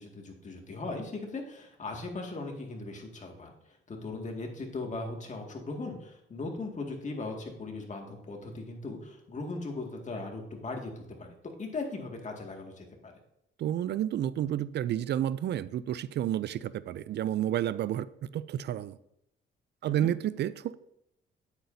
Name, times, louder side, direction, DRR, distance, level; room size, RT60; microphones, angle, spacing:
voice 1, 0.0-3.5 3.9-11.3 11.6-13.1 19.8-20.1, left 3 dB, 35° left, 2.0 m, -38 dB
voice 2, 13.6-19.0 19.8-20.7, right 11 dB, 60° right, 0.4 m, -30 dB
9.4 x 8.2 x 2.7 m
cardioid pair, 90°, 20 cm